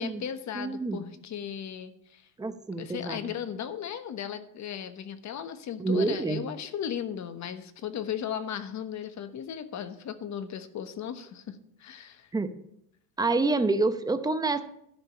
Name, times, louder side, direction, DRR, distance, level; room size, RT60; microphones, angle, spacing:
voice 1, 0.0-2.3 2.8-12.3, left 9 dB, 40° left, 11 dB, 1.2 m, -36 dB
voice 2, 0.5-1.0 2.4-3.3 5.8-6.4 12.3-12.5 13.2-14.6, right 3 dB, 10° right, 9 dB, 0.8 m, -27 dB
12.5 x 5.2 x 8.7 m, 0.74 s
cardioid pair, 120°, 44 cm